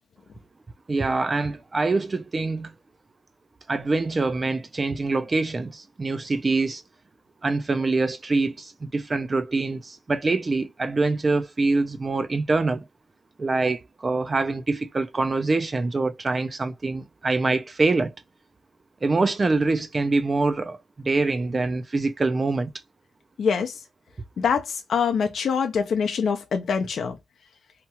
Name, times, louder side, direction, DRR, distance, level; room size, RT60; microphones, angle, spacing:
voice 1, 0.9-2.7 3.7-6.8 7.4-12.8 13.4-18.1 19.0-22.7, right 3 dB, 30° right, 0.3 m, -25 dB
voice 2, 23.4-23.8 24.4-27.2, left 6 dB, 70° left, 0.4 m, -24 dB
2.9 x 2.2 x 2.8 m
wide cardioid pair, 135°, 0 cm